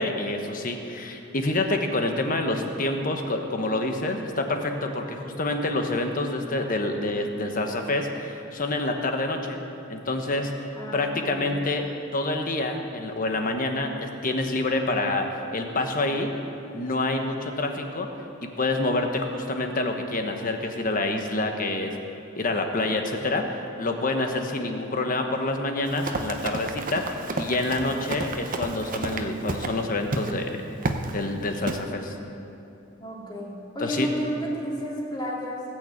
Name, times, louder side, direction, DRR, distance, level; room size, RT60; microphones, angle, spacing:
voice 1, 0.0-9.6 9.9-10.5 10.9-11.8 12.1-16.3 16.7-18.1 18.6-21.9 22.4-30.5 31.1-32.1 33.8-34.1, left 2 dB, 45° left, 4 dB, 1.2 m, -27 dB
voice 2, 10.8-11.5 33.0-35.6, equal, 20° left, -4 dB, 2.6 m, -31 dB
Run, 25.9-29.8 30.1-30.3 30.8-31.1 31.7-31.8, right 2 dB, 40° right, 0.8 m, -31 dB
17.5 x 6.7 x 8.5 m, 2.8 s
head